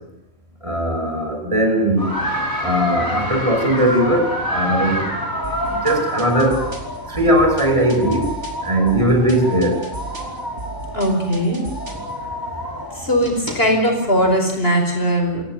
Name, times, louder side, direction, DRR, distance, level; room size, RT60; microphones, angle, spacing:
voice 1, 0.6-2.2 2.6-5.1 5.6-6.7 7.1-8.3 8.6-9.8, right 1 dB, 25° right, 4 dB, 5.8 m, -18 dB
sound 1, 2.0-14.4, equal, 15° left, 6.0 m, -28 dB
sound 2, 5.4-12.1, right 3 dB, 65° right, 3.6 m, -36 dB
voice 2, 10.9-11.6 12.9-15.4, equal, 50° left, 2 dB, 5.6 m, -19 dB
26.0 x 17.0 x 9.1 m, 0.89 s
omnidirectional pair, 1.3 m